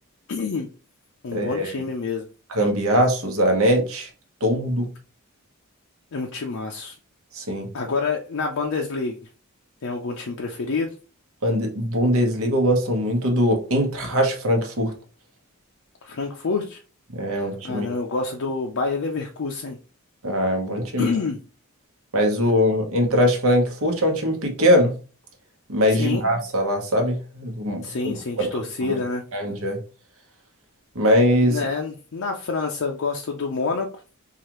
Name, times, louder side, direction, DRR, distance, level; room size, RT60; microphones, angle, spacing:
voice 1, 0.3-0.7 1.2-2.2 6.1-7.0 7.7-9.2 9.8-10.9 16.0-16.8 17.3-19.8 21.0-21.4 25.9-26.2 27.8-29.2 31.5-33.9, left 4 dB, 60° left, 2 dB, 0.5 m, -27 dB
voice 2, 1.3-1.7 2.5-4.1 4.4-4.9 7.3-7.7 11.4-14.9 17.1-17.9 20.2-21.1 22.1-24.9 25.7-29.0 29.3-29.8 30.9-31.6, equal, 75° right, 3 dB, 1.1 m, -21 dB
4.7 x 2.4 x 3.0 m, 0.36 s
head